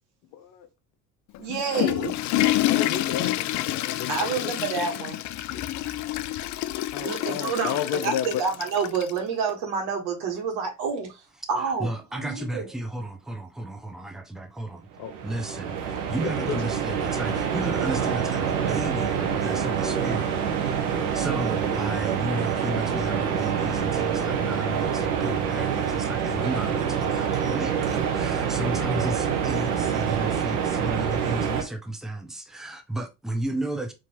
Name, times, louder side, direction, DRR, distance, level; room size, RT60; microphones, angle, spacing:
voice 1, 0.3-0.7 2.7-4.5 5.5-5.6 6.9-8.3 15.0-15.1 16.2-16.6, left 9 dB, 60° left, 0.8 m, -32 dB
Water / Toilet flush, 1.3-9.2, left 15 dB, 45° left, 0.4 m, -28 dB
voice 2, 1.4-2.2 4.1-5.2 7.0-11.2 11.5-12.7, right 5 dB, 65° right, 1.6 m, -28 dB
voice 3, 11.8-14.9 15.2-20.8 21.1-33.9, right 1 dB, ahead, 0.8 m, -33 dB
sound 1, 15.0-31.6, right 7 dB, 80° right, 1.0 m, -26 dB
4.4 x 3.0 x 3.0 m
hypercardioid pair, 65°, 44 cm